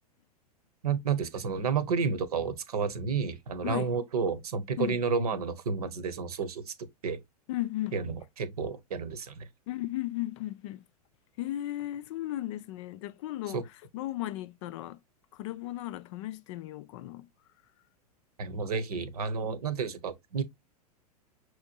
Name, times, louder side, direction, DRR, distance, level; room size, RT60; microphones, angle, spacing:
voice 1, 0.8-6.7 7.0-7.2 7.9-9.5 13.5-13.6 18.4-20.4, right 5 dB, 70° right, 1.0 m, -31 dB
voice 2, 7.5-7.9 9.7-10.8 11.4-13.6 13.9-15.0 15.3-17.3, left 15 dB, 50° left, 0.5 m, -35 dB
6.1 x 3.1 x 2.8 m
figure-of-eight pair, 100°, 20 cm